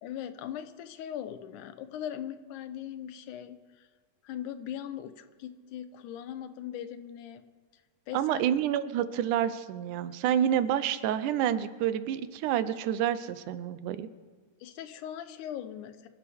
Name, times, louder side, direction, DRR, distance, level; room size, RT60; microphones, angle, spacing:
voice 1, 0.0-3.9 4.2-7.4 8.1-8.4 14.6-16.1, left 10 dB, 85° left, 10 dB, 2.3 m, -40 dB
voice 2, 8.1-14.1, right 10 dB, 90° right, 12 dB, 2.2 m, -28 dB
25.0 x 12.0 x 3.5 m, 1.4 s
omnidirectional pair, 3.5 m